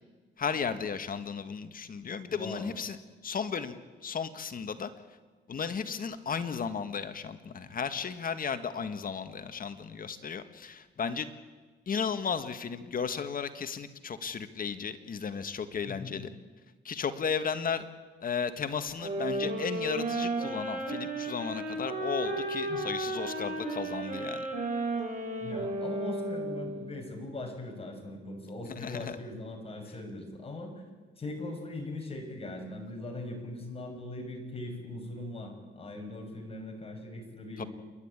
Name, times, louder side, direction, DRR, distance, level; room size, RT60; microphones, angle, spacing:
voice 1, 0.4-3.0 3.2-3.8 4.0-4.9 5.5-11.3 11.9-16.3 16.8-17.8 18.2-24.5 28.6-29.2 37.6-37.7, left 6 dB, 45° left, 9 dB, 1.7 m, -34 dB
voice 2, 2.3-2.7 15.8-16.2 22.7-22.9 25.4-30.7 31.2-37.7, left 2 dB, 30° left, 3 dB, 6.0 m, -40 dB
sound 1, 19.0-27.0, right 2 dB, 40° right, 7.3 m, -33 dB
28.5 x 12.0 x 9.0 m, 1.3 s
cardioid pair, 90°, 20 cm